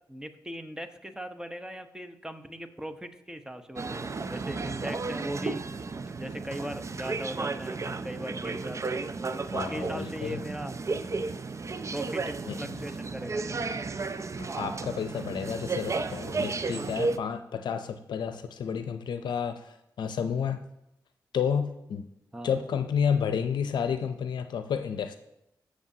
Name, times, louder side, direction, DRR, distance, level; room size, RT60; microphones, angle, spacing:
voice 1, 0.1-5.6 6.1-10.7 11.9-13.6 22.3-22.7, equal, 10° right, 8 dB, 1.0 m, -39 dB
sound 1, 3.8-17.2, right 4 dB, 40° right, 0.5 m, -33 dB
voice 2, 9.5-10.4 12.4-12.6 14.6-19.6 20.0-20.6 21.3-22.0 22.4-25.2, left 7 dB, 80° left, 9 dB, 0.6 m, -30 dB
16.5 x 6.4 x 2.8 m, 0.85 s
supercardioid pair, 45°, 8 cm